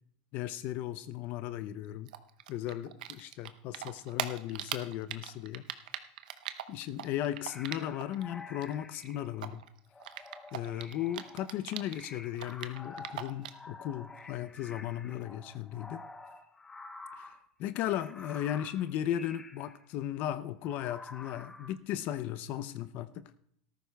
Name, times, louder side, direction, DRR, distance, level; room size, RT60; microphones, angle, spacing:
voice 1, 0.3-2.1 2.5-5.6 6.7-9.6 10.5-16.0 17.1-17.3 17.6-23.4, left 12 dB, 45° left, 0.5 m, -36 dB
Typing, 2.1-8.2 8.5-12.0 12.3-13.7, right 12 dB, 80° right, 0.8 m, -40 dB
sound 1, 7.3-9.4 9.9-17.4 17.8-19.8 20.6-21.8, left 3 dB, 10° left, 0.8 m, -50 dB
18.0 x 14.0 x 2.2 m
supercardioid pair, 145°, 4 cm